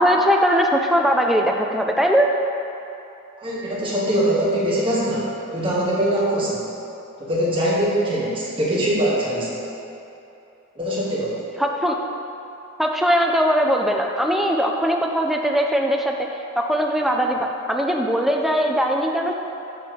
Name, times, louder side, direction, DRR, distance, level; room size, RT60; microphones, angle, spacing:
voice 1, 0.0-2.3 11.6-12.0 12.8-16.3 16.6-19.3, equal, ahead, 1 dB, 0.4 m, -20 dB
voice 2, 3.4-6.6 7.2-9.5 10.7-11.4, right 1 dB, 25° right, -7 dB, 1.3 m, -22 dB
6.9 x 3.1 x 6.0 m, 2.9 s
head